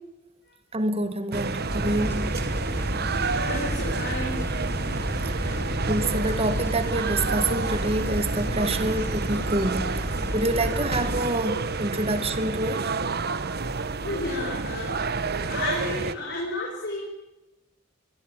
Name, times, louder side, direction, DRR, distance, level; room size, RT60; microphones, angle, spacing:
voice 1, 0.7-2.4 5.9-12.9, right 1 dB, 30° right, 2.0 m, -27 dB
sound 1, 1.3-16.2, right 4 dB, 55° right, 1.2 m, -29 dB
sound 2, 1.7-11.2, equal, 10° left, 3.9 m, -32 dB
voice 2, 3.4-4.4 5.4-5.7 14.0-15.0 15.5-17.0, left 2 dB, 60° left, 5.9 m, -32 dB
25.5 x 22.0 x 9.0 m
head